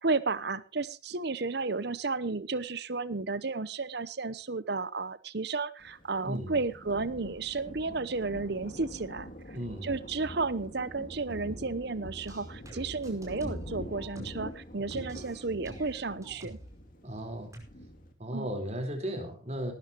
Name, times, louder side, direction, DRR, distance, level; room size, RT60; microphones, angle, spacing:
voice 1, 0.0-9.6 9.8-16.6 18.3-18.5, right 3 dB, 55° right, 16 dB, 0.8 m, -33 dB
Thunder, 5.8-18.1, equal, 45° left, 2.7 m, -45 dB
voice 2, 6.2-6.6 9.5-10.0 17.0-17.6 18.2-19.7, equal, 35° right, 5 dB, 4.2 m, -35 dB
sound 1, 12.2-14.6 14.9-16.8 17.5-17.6, right 1 dB, 15° right, 5.3 m, -49 dB
19.0 x 13.0 x 3.0 m, 0.31 s
head